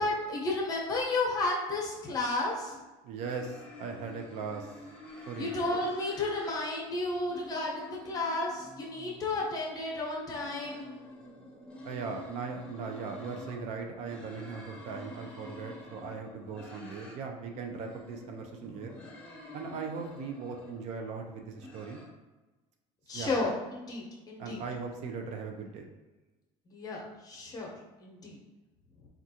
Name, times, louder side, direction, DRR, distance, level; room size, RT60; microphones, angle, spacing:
voice 1, 0.0-2.8 5.4-10.9 23.1-24.6 26.7-27.7 28.0-28.4, left 2 dB, 30° left, -2 dB, 0.8 m, -32 dB
sound 1, 2.4-2.8 3.2-6.5 6.8-9.4 10.1-13.6 14.0-17.2 17.5-20.8 21.3-22.0, left 1 dB, 10° left, 0.9 m, -49 dB
voice 2, 3.0-4.7 5.3-5.5 11.8-19.0 19.5-22.0 23.1-23.3 24.4-25.9, right 5 dB, 60° right, 3 dB, 0.5 m, -39 dB
3.5 x 2.4 x 2.7 m, 1.1 s
cardioid pair, 130°, 13 cm